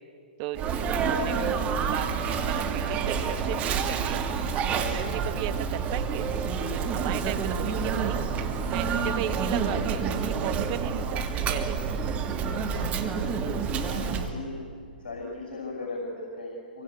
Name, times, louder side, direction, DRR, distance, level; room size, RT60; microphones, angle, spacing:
Sneeze, 0.5-14.3, right 6 dB, 25° right, 2.4 m, -28 dB
voice 1, 1.0-1.6 1.9-4.2 4.5-6.3 6.9-8.2 8.7-11.8, right 12 dB, 40° right, 9 dB, 1.6 m, -36 dB
voice 2, 13.7-14.6 15.0-16.8, left 2 dB, 60° left, -1 dB, 6.1 m, -37 dB
27.0 x 23.5 x 8.7 m, 2.3 s
figure-of-eight pair, 115°, 5 cm